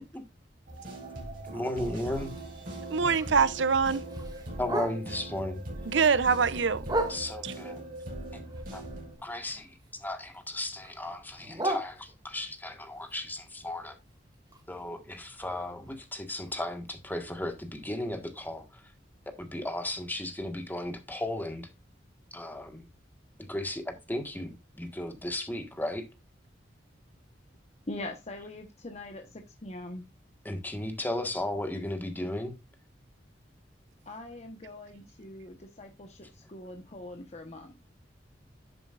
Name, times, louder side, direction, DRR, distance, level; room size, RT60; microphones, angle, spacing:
sound 1, 0.7-9.1, right 1 dB, 50° right, 5.6 m, -40 dB
voice 1, 1.5-2.3 3.0-3.1 4.6-5.6 7.1-7.8 8.3-8.4 8.7-8.8 9.2-14.0 14.7-18.8 19.4-21.7 22.3-22.8 23.5-26.0 30.4-32.5, left 1 dB, 10° left, 1.6 m, -35 dB
Bark, 2.1-5.3 5.7-7.6 8.1-9.9 10.2-12.5 13.0-16.9 17.2-17.3 17.6-18.0 18.4-18.5 18.9-19.0 19.5-19.6, right 1 dB, 20° right, 1.9 m, -38 dB
voice 2, 2.9-4.1 5.9-6.8 7.4-7.5, right 5 dB, 75° right, 0.7 m, -24 dB
voice 3, 27.9-30.0 34.1-37.8, left 2 dB, 40° left, 1.2 m, -42 dB
11.0 x 7.7 x 2.5 m
head